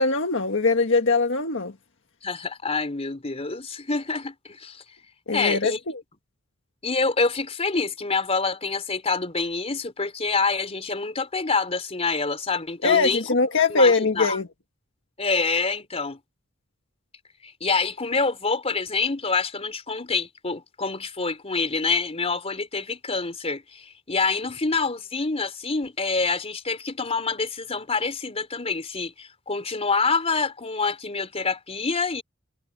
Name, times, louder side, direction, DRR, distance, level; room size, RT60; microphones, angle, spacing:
voice 1, 0.0-1.7 5.3-6.0 12.8-14.5, left 3 dB, 65° left, 1.6 m, -21 dB
voice 2, 2.2-4.8 5.3-5.8 6.8-13.3 13.7-14.4 15.2-16.2 17.4-32.2, left 4 dB, 30° left, 3.9 m, -26 dB
head